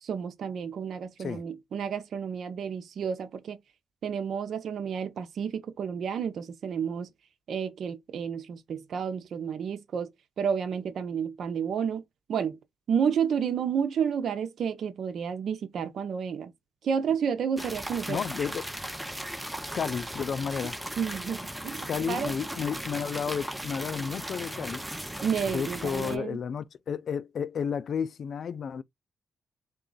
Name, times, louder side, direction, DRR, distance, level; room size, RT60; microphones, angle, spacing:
voice 1, 0.0-3.6 4.0-7.1 7.5-10.1 10.4-12.0 12.3-12.6 12.9-16.5 16.8-18.2 21.0-22.3 25.2-26.4, right 7 dB, 70° right, 0.5 m, -31 dB
sound 1, 17.6-26.2, right 1 dB, 5° right, 0.6 m, -37 dB
voice 2, 18.1-18.6 19.7-20.8 21.9-24.8 25.5-28.8, left 7 dB, 60° left, 0.3 m, -32 dB
3.8 x 2.3 x 3.7 m
cardioid pair, 75°, 0 cm